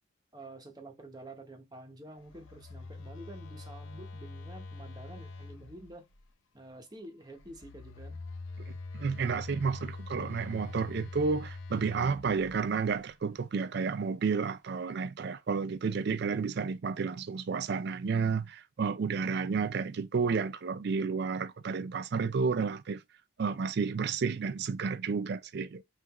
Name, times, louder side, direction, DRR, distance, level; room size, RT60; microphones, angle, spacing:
voice 1, 0.3-6.0 6.5-8.2, right 1 dB, 20° right, 0.8 m, -48 dB
Telephone, 2.2-6.2 7.4-13.1, left 3 dB, 75° left, 0.7 m, -44 dB
voice 2, 8.7-23.0 23.4-25.8, right 5 dB, 55° right, 0.4 m, -31 dB
5.6 x 2.5 x 3.0 m
head